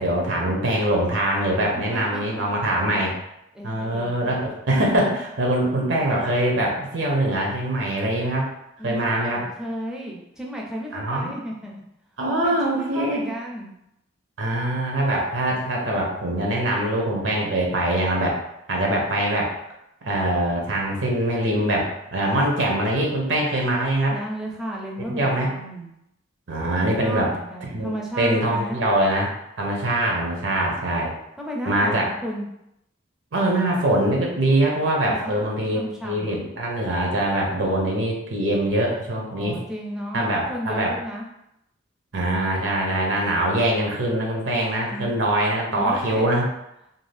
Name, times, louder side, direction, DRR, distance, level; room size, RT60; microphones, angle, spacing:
voice 1, 0.0-3.2 3.6-8.5 8.8-9.5 10.9-11.3 12.2-13.2 14.4-18.4 18.7-19.5 20.0-24.2 25.1-25.5 26.5-27.3 27.7-31.1 31.7-32.1 33.3-39.6 40.1-40.9 42.1-46.5, right 1 dB, 65° right, -1 dB, 0.6 m, -23 dB
voice 2, 1.9-2.4 3.5-4.3 8.8-11.8 12.4-13.7 24.1-25.9 27.0-28.8 31.4-32.5 35.1-35.4 35.7-36.4 39.3-41.3 44.8-45.1 45.7-46.3, equal, 5° right, -2 dB, 0.4 m, -33 dB
2.6 x 2.4 x 3.2 m, 0.82 s
head